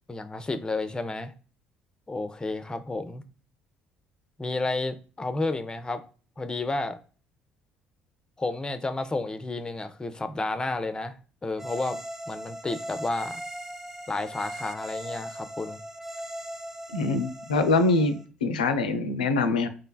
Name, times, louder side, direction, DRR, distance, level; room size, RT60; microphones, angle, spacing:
voice 1, 0.1-1.3 2.1-3.2 4.4-6.0 6.4-7.0 8.4-11.2 11.4-12.0 12.3-13.4 14.1-15.8, left 2 dB, 15° left, 0.5 m, -31 dB
sound 1, 11.6-18.2, right 1 dB, 10° right, 0.8 m, -39 dB
voice 2, 16.9-19.7, left 3 dB, 75° left, 0.4 m, -24 dB
3.8 x 3.2 x 2.3 m
figure-of-eight pair, 50°, 4 cm